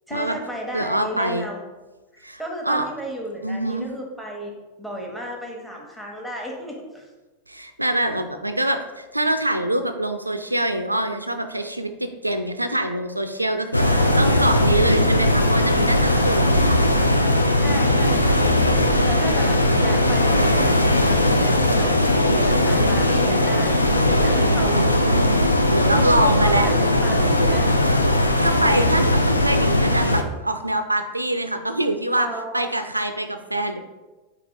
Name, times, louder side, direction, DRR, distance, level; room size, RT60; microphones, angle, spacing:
voice 1, 0.1-1.6 2.1-4.5 4.8-7.1 13.8-14.6 17.6-18.4 19.0-24.8 25.9-27.9 32.2-32.7, equal, 5° left, -2 dB, 1.0 m, -34 dB
voice 2, 0.7-1.5 2.2-2.9 3.4-3.9 7.5-16.8 24.3-26.7 28.1-32.3 32.5-33.8, right 1 dB, 85° right, 8 dB, 0.3 m, -25 dB
sound 1, 13.7-30.2, left 1 dB, 85° left, 0.3 m, -19 dB
4.6 x 2.8 x 4.0 m, 1.2 s
figure-of-eight pair, 90°, 0 cm